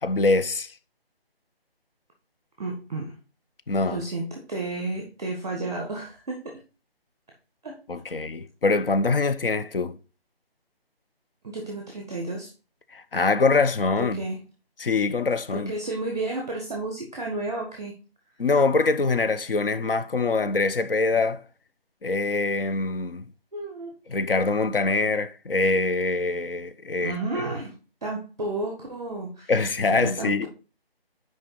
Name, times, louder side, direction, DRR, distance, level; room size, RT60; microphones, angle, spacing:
voice 1, 0.0-0.7 3.7-4.0 7.9-10.0 12.9-14.2 14.8-15.7 18.4-21.4 22.0-23.3 24.1-27.2 29.5-30.5, left 3 dB, 65° left, 0.7 m, -24 dB
voice 2, 2.6-3.1 3.8-6.6 7.6-7.8 11.4-12.5 14.0-14.4 15.5-17.9 23.5-23.9 27.0-27.8 28.0-29.5 29.9-30.5, right 2 dB, 5° right, 0.6 m, -32 dB
6.5 x 4.9 x 4.5 m
figure-of-eight pair, 165°, 31 cm